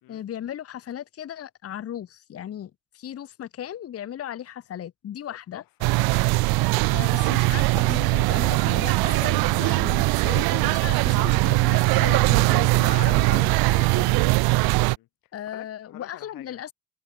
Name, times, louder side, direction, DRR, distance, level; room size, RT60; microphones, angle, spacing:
voice 1, 0.1-5.6 6.9-14.2 15.3-16.7, left 10 dB, 40° left, 1.6 m, -36 dB
voice 2, 5.3-6.4 14.5-15.1 15.5-16.6, left 16 dB, 70° left, 2.2 m, -49 dB
sound 1, 5.8-15.0, right 23 dB, 85° right, 0.5 m, -21 dB
cardioid pair, 155°, 36 cm